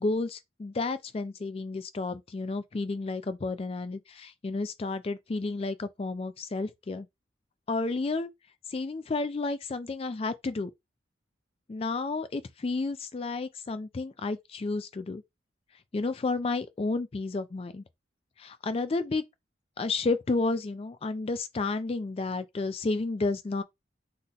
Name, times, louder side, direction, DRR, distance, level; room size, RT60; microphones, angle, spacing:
voice 1, 0.0-7.1 7.7-8.3 8.7-10.7 11.7-15.2 15.9-17.8 18.4-19.2 19.8-23.6, left 3 dB, 30° left, 0.3 m, -31 dB
2.8 x 2.1 x 3.7 m
head